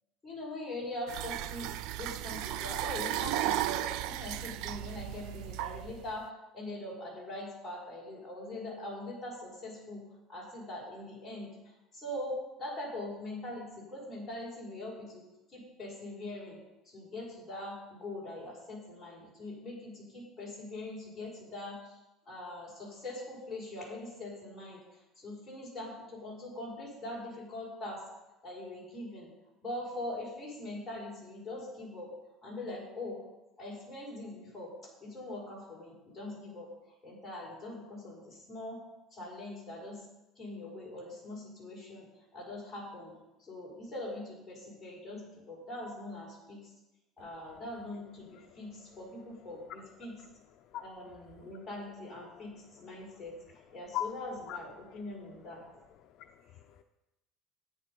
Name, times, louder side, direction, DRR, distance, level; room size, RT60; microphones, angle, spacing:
voice 1, 0.2-15.2 15.5-16.6 16.8-22.0 22.3-28.0 28.4-29.3 29.6-32.1 32.4-33.2 33.6-36.7 37.0-38.8 39.1-40.1 40.4-46.7 47.2-50.1 50.8-55.6, left 1 dB, 10° left, -5 dB, 5.3 m, -42 dB
sound 1, 1.1-6.1, right 13 dB, 65° right, 0.4 m, -35 dB
voice 2, 56.2-56.8, left 14 dB, 50° left, 6 dB, 0.6 m, -37 dB
13.0 x 10.0 x 5.5 m, 0.96 s
cardioid pair, 160°, 0 cm